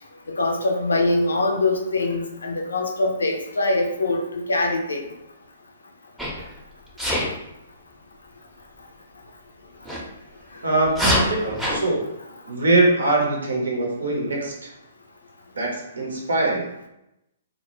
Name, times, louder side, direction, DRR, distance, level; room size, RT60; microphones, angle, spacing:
voice 1, 0.3-5.0, left 2 dB, 75° left, 3 dB, 0.4 m, -23 dB
Sneeze, 6.2-6.5 7.0-7.3 9.8-10.0 10.9-11.8, equal, 5° right, 0.6 m, -23 dB
voice 2, 10.6-12.1 12.5-14.7 15.5-16.7, right 2 dB, 75° right, 0 dB, 0.7 m, -22 dB
2.2 x 2.1 x 3.0 m, 0.86 s
figure-of-eight pair, 120°, 0 cm